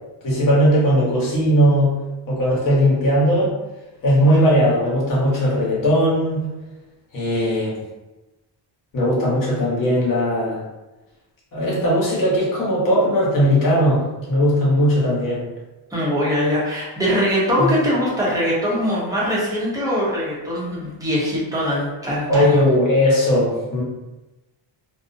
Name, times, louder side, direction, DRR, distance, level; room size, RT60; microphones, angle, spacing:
voice 1, 0.2-1.9 2.3-3.5 4.0-6.4 7.1-7.8 8.9-10.6 11.5-14.0 14.3-15.4 17.6-17.7 22.3-23.8, equal, 45° left, -6 dB, 1.0 m, -18 dB
voice 2, 15.9-22.6, equal, 10° right, -7 dB, 0.6 m, -22 dB
2.5 x 2.0 x 2.5 m, 1.1 s
cardioid pair, 155°, 45 cm